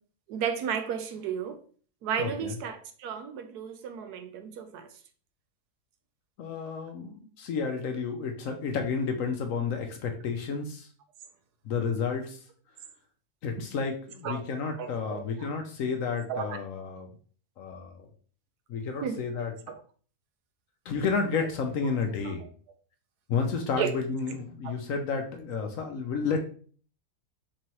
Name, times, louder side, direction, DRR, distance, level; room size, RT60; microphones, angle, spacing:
voice 1, 0.3-1.6 2.0-4.9 14.2-14.5 14.8-15.5 16.3-16.6 19.0-19.2 19.7-19.8 22.2-22.3 23.8-23.9 24.6-24.7, right 7 dB, 80° right, 8 dB, 1.1 m, -33 dB
voice 2, 2.2-2.5 6.4-10.9 11.6-12.4 13.4-17.1 17.6-18.1 18.7-19.5 20.9-22.4 23.3-26.4, left 5 dB, 65° left, 4 dB, 0.9 m, -31 dB
4.5 x 3.1 x 2.9 m, 0.44 s
omnidirectional pair, 1.7 m